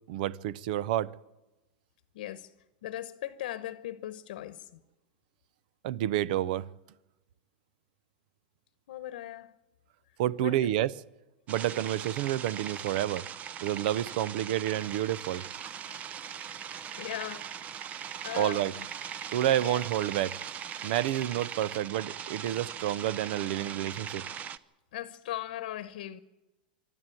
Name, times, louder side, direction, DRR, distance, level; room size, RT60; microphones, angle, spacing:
voice 1, 0.1-1.1 5.8-6.7 10.2-10.9 11.5-13.2 13.6-15.5 18.4-18.8 19.3-20.4 20.8-24.3, right 13 dB, 65° right, 0.7 m, -29 dB
voice 2, 2.1-2.5 2.8-4.6 8.9-9.5 10.4-10.7 15.9-16.0 17.0-17.5 18.2-18.6 19.6-19.8 24.9-26.2, left 13 dB, 75° left, 1.0 m, -38 dB
sound 1, 11.5-24.6, right 8 dB, 30° right, 0.7 m, -40 dB
24.0 x 12.5 x 9.1 m
supercardioid pair, 125°, 5 cm